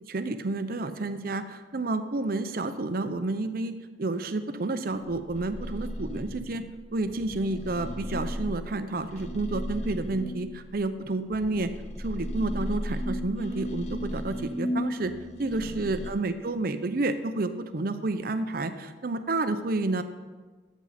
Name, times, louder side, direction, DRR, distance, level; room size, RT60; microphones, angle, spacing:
voice 1, 0.1-6.6 6.9-11.7 12.0-15.1 15.4-20.0, right 2 dB, 55° right, 10 dB, 0.7 m, -30 dB
sound 1, 4.9-10.9 11.3-16.1, equal, 40° left, 0.9 m, -35 dB
13.5 x 7.3 x 4.2 m, 1.3 s
head